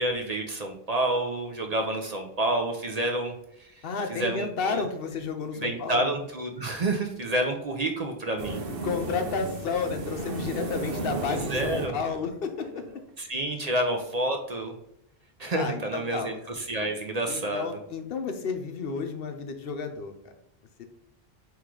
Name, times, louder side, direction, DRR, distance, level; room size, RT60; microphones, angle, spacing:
voice 1, 0.0-4.8 5.5-8.6 11.3-11.9 13.2-14.7 15.4-17.6, right 1 dB, 45° right, 3 dB, 0.6 m, -29 dB
voice 2, 3.8-6.1 8.8-12.8 15.5-16.4 17.3-20.1 20.8-20.9, left 5 dB, 65° left, 6 dB, 0.8 m, -32 dB
sound 1, 8.4-13.0, right 2 dB, 65° right, 1.0 m, -34 dB
4.6 x 3.1 x 3.7 m, 0.79 s
omnidirectional pair, 1.1 m